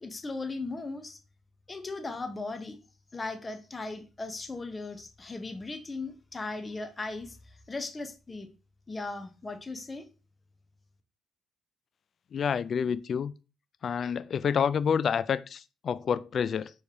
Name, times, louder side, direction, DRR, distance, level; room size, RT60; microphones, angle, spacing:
voice 1, 0.0-1.2 1.7-2.8 3.1-7.4 7.7-8.5 8.9-10.1, left 3 dB, 30° left, 0.9 m, -37 dB
voice 2, 12.3-13.3 13.8-16.7, left 7 dB, 55° left, 0.3 m, -28 dB
4.4 x 3.3 x 2.9 m
hypercardioid pair, 55°, 0 cm